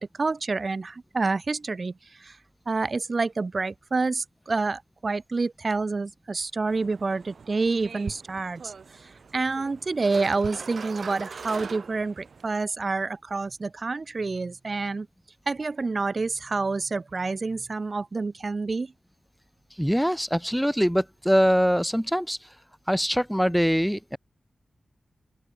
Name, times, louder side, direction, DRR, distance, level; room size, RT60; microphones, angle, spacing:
voice 1, 0.0-1.9 2.2-2.4 2.7-8.7 9.0-15.1 15.5-18.9, right 3 dB, 45° right, 2.7 m, -28 dB
sound 1, 6.7-12.5, right 5 dB, 75° right, 7.1 m, -42 dB
voice 2, 19.8-22.4 22.9-24.2, equal, ahead, 2.6 m, -23 dB
open air
wide cardioid pair, 85°, 0 cm